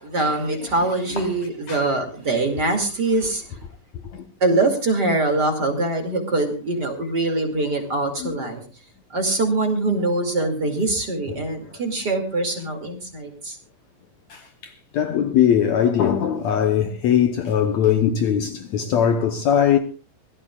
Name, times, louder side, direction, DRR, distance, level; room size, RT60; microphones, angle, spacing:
voice 1, 0.0-3.6 4.4-8.6 9.1-13.6, right 2 dB, 30° right, 2.7 m, -23 dB
voice 2, 14.3-19.8, left 9 dB, 65° left, 1.9 m, -20 dB
24.5 x 16.5 x 2.4 m
omnidirectional pair, 4.0 m